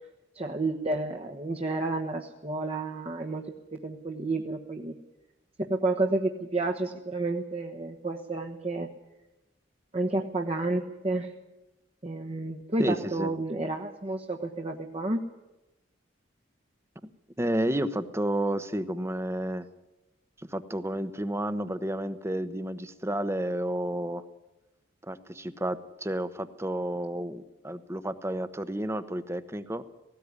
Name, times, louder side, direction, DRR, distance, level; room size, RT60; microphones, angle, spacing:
voice 1, 0.3-4.9 5.6-8.9 9.9-11.3 12.0-15.2, right 2 dB, 35° right, 2 dB, 1.3 m, -30 dB
voice 2, 12.8-13.3 17.4-19.7 20.4-24.2 25.1-29.8, right 1 dB, 15° right, 12 dB, 1.0 m, -31 dB
18.5 x 16.5 x 9.7 m, 0.99 s
head